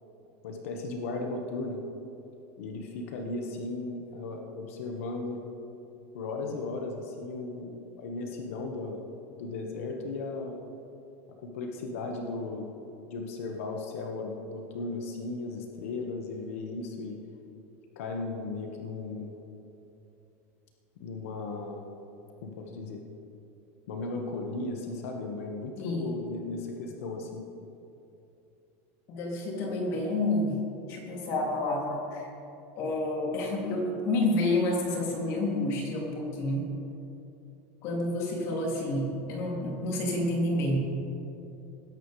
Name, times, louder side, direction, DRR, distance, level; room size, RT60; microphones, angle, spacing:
voice 1, 0.4-1.8 2.6-5.4 6.1-9.0 9.4-10.6 11.4-12.7 13.1-17.2 17.9-19.3 21.0-21.9 22.4-23.0 23.9-27.5, left 3 dB, 80° left, 2 dB, 1.5 m, -36 dB
voice 2, 25.8-26.1 29.1-30.6 30.9-32.3 32.8-36.7 37.8-40.8, left 2 dB, 40° left, -2 dB, 2.8 m, -29 dB
20.0 x 11.0 x 3.3 m, 2.8 s
supercardioid pair, 165°, 7 cm